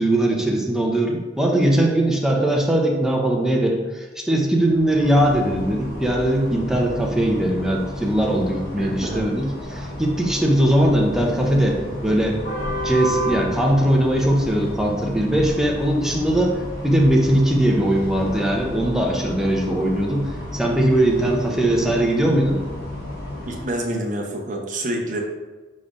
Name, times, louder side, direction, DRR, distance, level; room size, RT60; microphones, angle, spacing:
voice 1, 0.0-12.4 12.8-22.6, right 1 dB, 5° right, -1 dB, 0.6 m, -20 dB
sound 1, 4.5-23.6, equal, 60° left, 1.2 m, -32 dB
voice 2, 8.8-9.3 23.5-25.2, right 1 dB, 50° right, 0 dB, 0.7 m, -27 dB
4.9 x 4.2 x 2.4 m, 1.3 s
head